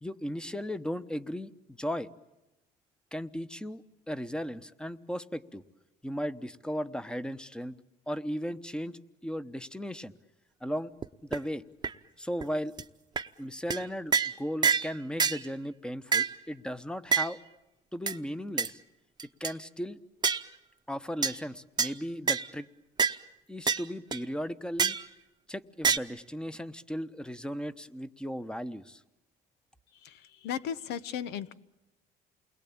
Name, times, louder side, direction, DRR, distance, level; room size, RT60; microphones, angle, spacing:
voice 1, 0.0-1.5 1.8-2.1 3.1-5.6 6.0-7.7 8.1-10.1 10.6-10.9 11.2-11.6 12.2-12.7 13.4-17.4 17.9-18.8 19.4-20.0 20.9-22.7 23.5-25.0 25.5-29.0, equal, 5° left, 13 dB, 1.0 m, -36 dB
sound 1, 11.0-11.1 11.3-11.4 11.8-11.9 12.4-12.5 12.8-12.9 13.2-13.3 13.7-13.8 14.1-14.3 14.6-14.9 15.2-15.4 16.1-16.3 17.1-17.3 18.1-18.2 18.6-18.7 19.2-19.5 20.2-20.5 21.2-21.4 21.8-21.9 22.3-22.5 23.0-23.2 23.7-23.8 24.1-24.2 24.8-25.1 25.8-26.0, right 6 dB, 25° right, 0.9 m, -26 dB
voice 2, 29.9-31.5, left 9 dB, 85° left, 15 dB, 1.0 m, -36 dB
29.0 x 21.5 x 8.7 m, 0.96 s
cardioid pair, 110°, 17 cm